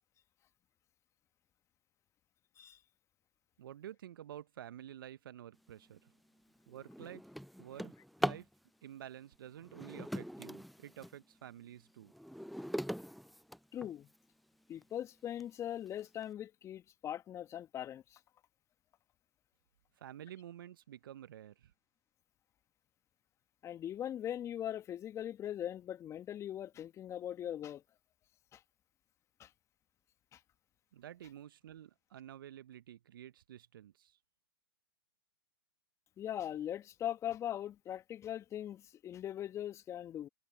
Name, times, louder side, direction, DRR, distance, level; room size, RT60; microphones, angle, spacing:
voice 1, 3.6-6.1 6.7-7.2 7.6-7.9 8.2-8.5 8.8-12.1 20.0-21.7 30.9-34.2, right 11 dB, 60° right, 1.3 m, -50 dB
Drawer open or close, 5.9-6.1 6.6-8.5 9.6-11.2 11.7-14.2 14.8-14.9 15.4-15.5 15.9-16.2, equal, ahead, 0.4 m, -41 dB
voice 2, 13.7-14.1 14.7-18.2 23.6-27.8 28.5-28.6 29.4-29.5 30.3-30.4 36.2-40.3, left 11 dB, 20° left, 1.6 m, -41 dB
figure-of-eight pair, 115°, 13 cm